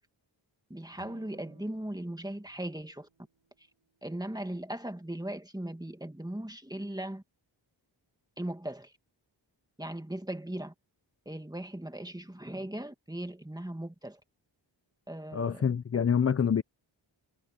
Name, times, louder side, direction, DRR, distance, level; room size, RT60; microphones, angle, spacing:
voice 1, 0.7-3.1 4.0-7.2 8.4-8.9 9.8-10.7 11.3-14.2 15.1-15.6 15.9-16.1, right 1 dB, 10° right, 2.1 m, -38 dB
sound 1, 0.9-4.2, right 7 dB, 80° right, 4.4 m, -61 dB
voice 2, 15.3-16.6, left 7 dB, 35° left, 0.5 m, -26 dB
wide cardioid pair, 95°, 46 cm